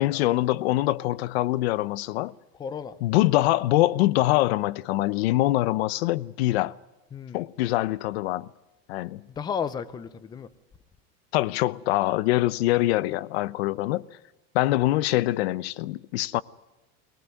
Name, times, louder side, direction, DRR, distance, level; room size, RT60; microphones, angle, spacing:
voice 1, 0.0-2.3 3.0-6.8 7.3-8.5 8.9-9.2 11.3-14.1 14.5-16.4, left 17 dB, 80° left, 0.8 m, -24 dB
voice 2, 2.6-3.0 7.1-7.4 9.3-10.5, left 7 dB, 15° left, 0.7 m, -33 dB
21.0 x 19.5 x 9.1 m
cardioid pair, 175°, 31 cm